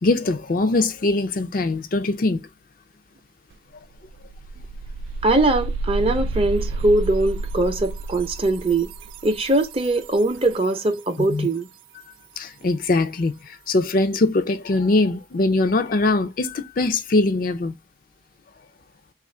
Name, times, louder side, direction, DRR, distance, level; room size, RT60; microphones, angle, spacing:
voice 1, 0.0-2.4 11.3-11.5 12.4-13.3 13.7-17.7, left 2 dB, 45° left, 0.4 m, -21 dB
sound 1, 3.5-3.6 3.9-10.7, right 3 dB, 80° right, 0.4 m, -30 dB
voice 2, 5.2-8.9 9.2-11.7, right 2 dB, 30° right, 0.6 m, -21 dB
3.4 x 2.4 x 4.2 m
head